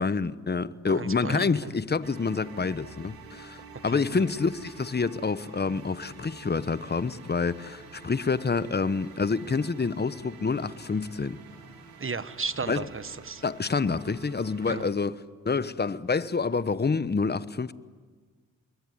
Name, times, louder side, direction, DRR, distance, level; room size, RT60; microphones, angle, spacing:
voice 1, 0.0-11.4 12.7-12.9 13.4-15.2 15.4-17.7, left 4 dB, 30° left, 1.1 m, -28 dB
voice 2, 0.9-1.5 3.9-4.2 12.0-13.4 14.7-14.9, right 4 dB, 35° right, 1.4 m, -34 dB
sound 1, 2.0-14.9, right 4 dB, 90° right, 3.3 m, -48 dB
27.0 x 22.0 x 9.6 m
supercardioid pair, 45°, 34 cm